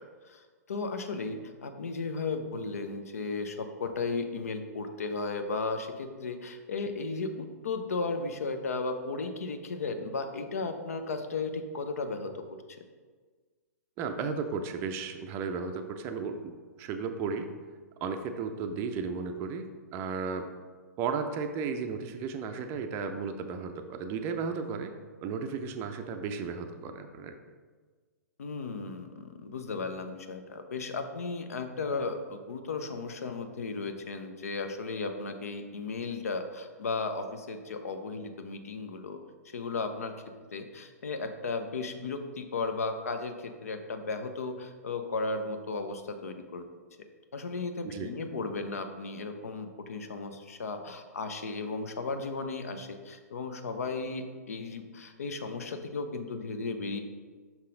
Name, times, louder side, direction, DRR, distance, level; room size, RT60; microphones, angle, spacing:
voice 1, 0.2-12.4 28.4-39.2 39.5-40.1 40.5-46.6 47.3-57.0, left 3 dB, 60° left, 7 dB, 0.7 m, -35 dB
voice 2, 14.0-17.5 18.0-20.5 21.0-24.9 25.2-27.3 47.8-48.1, right 5 dB, 25° right, 7 dB, 0.5 m, -34 dB
6.0 x 5.6 x 3.8 m, 1.5 s
figure-of-eight pair, 115°, 9 cm